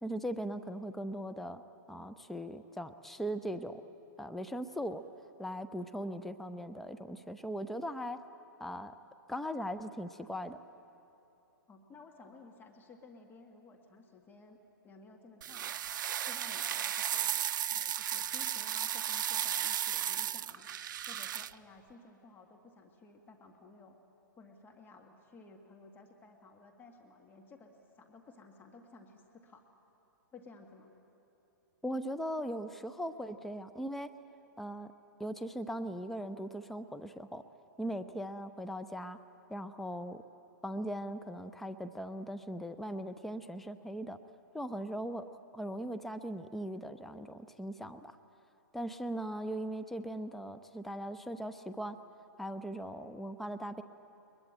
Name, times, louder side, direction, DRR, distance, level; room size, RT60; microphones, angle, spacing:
voice 1, 0.0-1.6 1.9-3.8 4.2-5.0 5.4-8.2 8.6-8.9 9.3-10.6 31.8-34.1 34.6-34.9 35.2-37.4 37.8-39.2 39.5-40.2 40.6-44.2 44.5-45.3 45.5-48.1 48.7-52.0 52.4-53.8, equal, ahead, 10 dB, 0.7 m, -39 dB
voice 2, 11.7-14.6 14.8-15.9 16.3-20.7 21.1-24.0 24.4-29.7 30.3-30.9, left 3 dB, 20° left, 2 dB, 2.0 m, -56 dB
sound 1, 15.4-21.5, right 10 dB, 65° right, 0.5 m, -34 dB
22.0 x 22.0 x 9.0 m, 2.9 s
hypercardioid pair, 120°, 11 cm